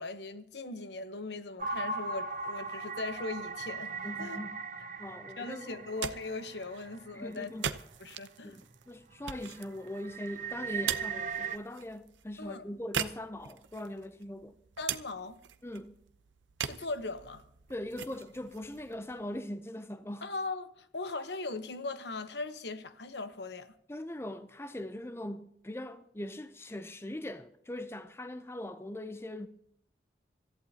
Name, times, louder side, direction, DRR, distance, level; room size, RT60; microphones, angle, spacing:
voice 1, 0.0-3.9 4.2-4.4 5.0-5.1 5.4-7.5 8.0-8.6 12.4-12.7 14.8-15.4 16.6-17.4 20.2-23.7, left 3 dB, 70° left, 1.0 m, -39 dB
sound 1, 1.6-7.4 7.9-8.0 8.5-8.8 9.1-11.6, right 4 dB, 45° right, 0.8 m, -39 dB
voice 2, 4.0-4.6 5.0-5.9 7.1-7.6 8.4-14.5 15.6-15.9 17.7-20.3 23.9-29.5, left 1 dB, 15° left, 0.5 m, -41 dB
sound 2, 5.7-19.7, right 8 dB, 90° right, 0.7 m, -42 dB
26.0 x 14.0 x 2.9 m
head